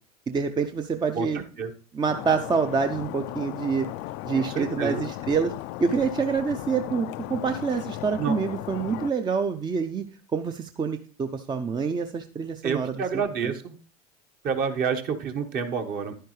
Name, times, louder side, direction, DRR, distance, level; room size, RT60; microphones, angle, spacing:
voice 1, 0.3-1.4 1.9-3.9 4.2-5.5 5.8-10.1 10.3-13.2, right 5 dB, 20° right, 8 dB, 0.6 m, -27 dB
voice 2, 1.1-1.7 4.3-5.0 8.2-8.4 12.6-13.7 14.4-16.1, right 6 dB, 45° right, 5 dB, 1.4 m, -29 dB
Stream, 2.1-9.1, left 16 dB, 55° left, 0.4 m, -36 dB
10.5 x 10.0 x 3.2 m, 0.40 s
hypercardioid pair, 85°, 21 cm